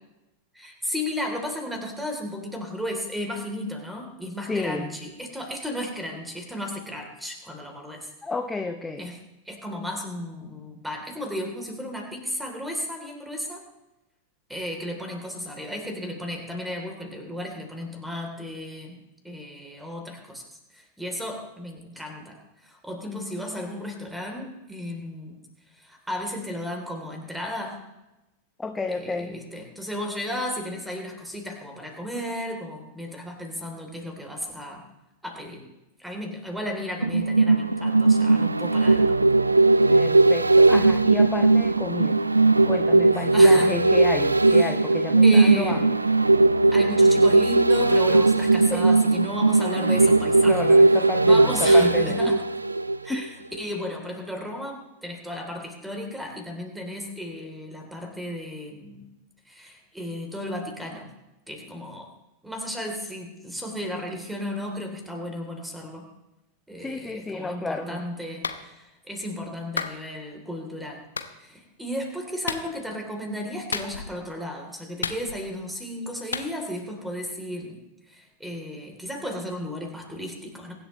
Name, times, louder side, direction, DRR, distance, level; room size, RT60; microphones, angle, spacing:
voice 1, 0.5-8.1 9.0-9.2 9.4-13.6 14.5-20.4 20.7-25.4 25.8-27.8 28.9-34.8 35.2-35.6 36.0-39.2 43.3-43.7 44.5-44.7 45.2-45.8 46.7-50.6 51.2-52.4 53.0-53.3 53.6-59.1 59.5-61.1 61.5-62.1 62.4-66.1 66.7-71.0 71.4-77.8 78.1-80.7, left 1 dB, 5° right, 2 dB, 3.2 m, -34 dB
voice 2, 4.5-4.9 8.2-9.1 23.0-23.7 28.6-29.4 39.9-42.2 42.7-46.0 48.7-48.8 50.5-52.4 53.1-53.4 66.8-68.0, left 3 dB, 10° left, 6 dB, 0.8 m, -31 dB
sound 1, 37.0-53.3 53.6-53.7, right 2 dB, 80° right, 0.5 m, -18 dB
Clapping, 68.4-68.6 69.8-70.0 71.2-71.3 72.5-72.7 73.7-74.2 75.0-75.6 76.3-76.5, left 5 dB, 70° left, 0.8 m, -31 dB
23.0 x 11.0 x 3.1 m, 0.97 s
figure-of-eight pair, 90°, 0 cm